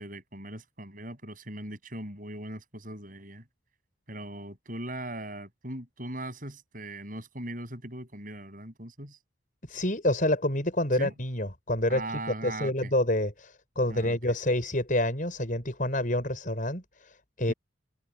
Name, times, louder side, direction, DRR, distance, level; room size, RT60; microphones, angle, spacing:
voice 1, 0.0-3.4 4.1-9.2 11.0-11.1 11.9-12.9 13.9-14.2 17.5-17.6, right 1 dB, 40° right, 7.8 m, -39 dB
voice 2, 9.7-17.5, left 1 dB, 40° left, 6.1 m, -28 dB
head